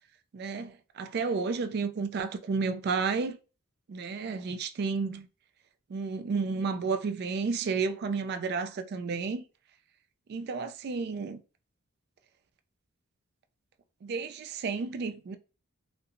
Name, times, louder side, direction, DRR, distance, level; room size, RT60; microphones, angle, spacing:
voice 1, 0.3-3.4 3.9-5.3 5.9-9.4 10.3-11.4 14.0-15.4, right 4 dB, 50° right, 0.3 m, -31 dB
2.7 x 2.1 x 2.5 m
head